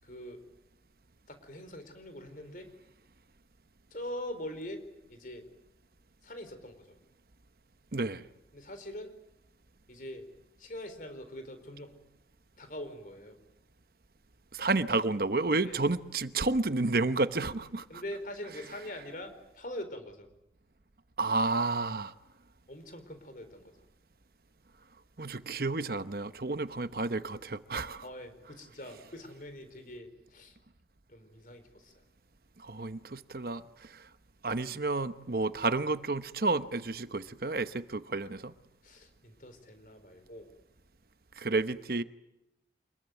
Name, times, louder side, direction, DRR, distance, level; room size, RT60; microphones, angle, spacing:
voice 1, 0.0-0.4 1.3-2.7 3.9-4.8 5.1-5.4 6.2-7.0 8.5-9.1 9.9-10.2 10.6-12.0 12.5-13.4 15.6-15.8 17.9-20.3 22.7-23.7 28.0-30.6 31.1-32.0 38.8-40.5, left 1 dB, 50° left, 4.4 m, -43 dB
voice 2, 7.9-8.2 14.5-18.0 21.2-22.1 25.2-28.0 32.6-34.1 34.4-38.5 41.4-42.0, right 3 dB, 55° right, 0.9 m, -31 dB
26.5 x 21.5 x 9.3 m
head